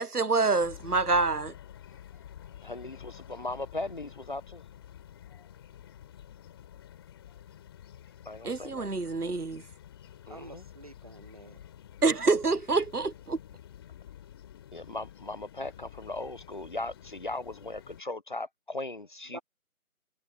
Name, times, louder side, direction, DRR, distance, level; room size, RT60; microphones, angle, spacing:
voice 1, 0.0-1.5 8.4-9.6 12.0-13.4, right 3 dB, 85° right, 1.3 m, -26 dB
sound 1, 0.6-18.0, left 10 dB, 15° left, 3.7 m, -50 dB
voice 2, 2.6-4.6 8.2-8.9 10.3-10.6 14.7-19.4, left 2 dB, 35° left, 1.0 m, -38 dB
voice 3, 10.3-11.6 19.3-19.4, right 2 dB, 25° right, 0.9 m, -47 dB
figure-of-eight pair, 160°, 44 cm